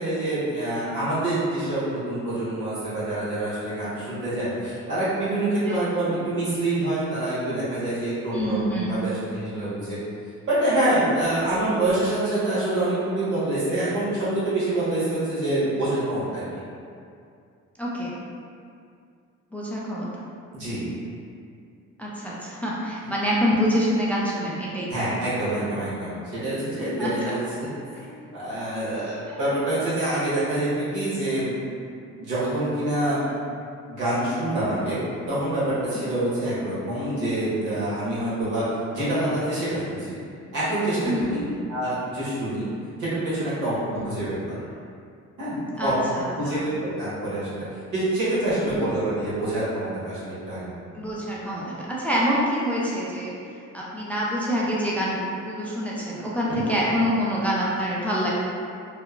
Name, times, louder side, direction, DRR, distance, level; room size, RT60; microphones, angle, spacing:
voice 1, 0.0-10.0 10.5-16.4 20.5-20.8 24.9-31.5 32.1-33.3 33.9-35.0 35.3-38.6 38.9-40.1 40.5-41.4 41.7-42.7 43.0-43.8 44.0-44.6 45.4-45.6 45.8-45.9 46.4-47.6 47.9-50.7 56.5-56.7, right 1 dB, 80° right, -10 dB, 1.3 m, -26 dB
voice 2, 8.3-8.9 17.8-18.2 19.5-20.3 22.0-25.0 26.8-27.1 35.9-36.0 41.0-41.3 43.9-44.1 45.8-46.7 48.7-48.8 51.0-53.3 53.7-58.3, equal, 5° left, -6 dB, 0.4 m, -26 dB
2.8 x 2.2 x 2.4 m, 2.4 s
cardioid pair, 90°, 30 cm